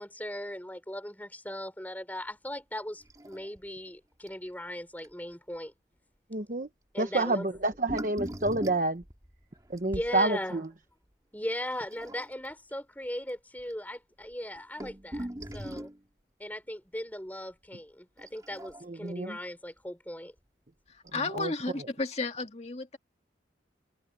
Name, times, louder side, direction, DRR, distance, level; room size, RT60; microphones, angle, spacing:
voice 1, 0.0-5.7 6.9-7.5 9.8-10.6 11.3-15.9 16.4-20.3, left 1 dB, 10° left, 4.5 m, -38 dB
sound 1, 3.0-3.6 3.9-4.0 4.3-4.5 5.0-5.1 7.5-10.1 11.8-12.5 13.3-13.4 13.6-13.7 14.3-16.0 18.2-19.1 20.4-20.5 21.1-21.2, right 1 dB, 20° right, 3.0 m, -40 dB
voice 2, 6.3-6.7 7.0-9.0 9.7-10.6 18.9-19.4 21.3-21.5, right 2 dB, 45° right, 1.1 m, -29 dB
voice 3, 20.9-23.0, left 3 dB, 35° left, 2.1 m, -33 dB
head